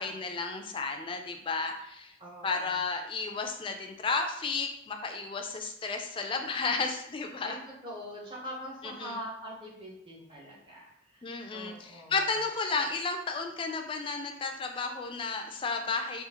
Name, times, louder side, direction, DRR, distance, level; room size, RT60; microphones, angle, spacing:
voice 1, 0.0-2.1 2.4-7.6 9.0-9.2 11.2-16.2, left 4 dB, 25° left, 4 dB, 0.3 m, -33 dB
voice 2, 2.2-2.8 7.4-7.6 7.8-12.4, equal, 25° right, -2 dB, 0.7 m, -43 dB
3.6 x 2.4 x 2.8 m, 0.77 s
head